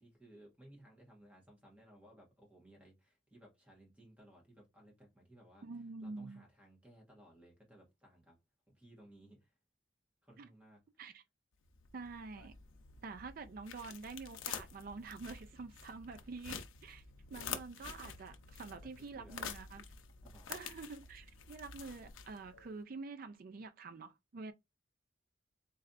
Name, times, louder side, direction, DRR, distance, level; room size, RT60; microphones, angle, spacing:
voice 1, 0.0-5.7 6.0-8.4 8.7-9.6 10.2-10.8 18.8-19.5 20.2-20.7, right 1 dB, 5° right, 1.4 m, -60 dB
voice 2, 5.6-6.4 10.4-10.5 11.0-11.2 11.9-12.5 13.0-17.0 17.3-19.8 20.5-24.5, right 4 dB, 50° right, 0.4 m, -47 dB
sound 1, 11.6-22.7, left 7 dB, 90° left, 0.6 m, -48 dB
4.0 x 3.1 x 2.5 m
head